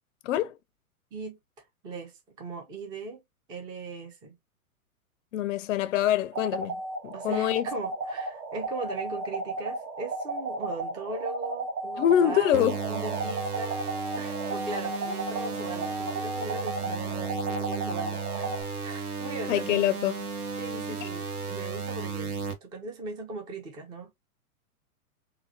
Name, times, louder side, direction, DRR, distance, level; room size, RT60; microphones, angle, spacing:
voice 1, 0.2-0.6 5.3-6.8 7.0-7.7 12.0-12.7 19.5-20.2 21.0-21.1, left 11 dB, 60° left, 0.5 m, -25 dB
voice 2, 1.8-3.2 3.5-4.4 7.1-13.8 14.2-18.6 18.8-19.8 20.6-24.2, right 3 dB, 10° right, 0.4 m, -39 dB
sound 1, 6.3-18.6, right 2 dB, 35° right, 1.6 m, -34 dB
sound 2, 12.5-22.5, right 5 dB, 80° right, 1.0 m, -34 dB
3.7 x 2.2 x 2.6 m
hypercardioid pair, 120°, 44 cm